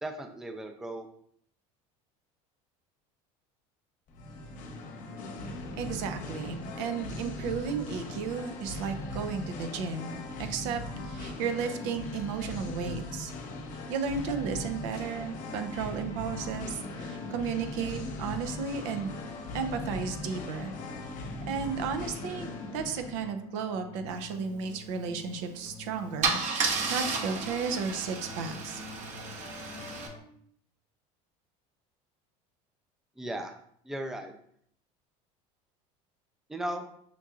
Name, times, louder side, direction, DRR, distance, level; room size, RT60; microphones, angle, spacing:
voice 1, 0.0-1.1 33.2-33.5 33.8-34.4 36.5-36.9, right 1 dB, 5° right, 5 dB, 0.4 m, -36 dB
Singing, 4.1-23.2, left 2 dB, 55° left, 0.8 m, -39 dB
voice 2, 5.8-13.3 13.9-19.2 19.5-20.7 21.0-21.1 21.5-28.8, right 5 dB, 80° right, 7 dB, 0.6 m, -34 dB
sound 1, 15.4-30.2, left 3 dB, 40° left, 1.1 m, -47 dB
Car / Engine starting / Idling, 25.5-25.7 26.2-30.1, right 4 dB, 50° right, 0.8 m, -32 dB
6.0 x 2.7 x 2.4 m, 0.65 s
supercardioid pair, 105°, 16 cm